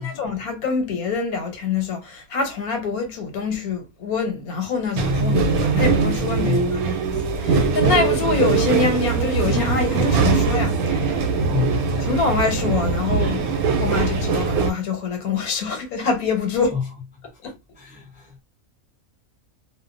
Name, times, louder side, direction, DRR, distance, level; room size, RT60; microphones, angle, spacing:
voice 1, 0.0-6.6 7.4-11.4 12.1-13.5 13.8-16.8 17.4-17.5, left 5 dB, 85° left, 1.3 m, -25 dB
sound 1, 5.0-14.7, right 4 dB, 90° right, 1.1 m, -21 dB
voice 2, 6.4-6.8 11.5-12.0 16.7-16.8 17.8-18.4, left 7 dB, 15° right, 0.3 m, -28 dB
2.5 x 2.2 x 2.4 m
omnidirectional pair, 1.5 m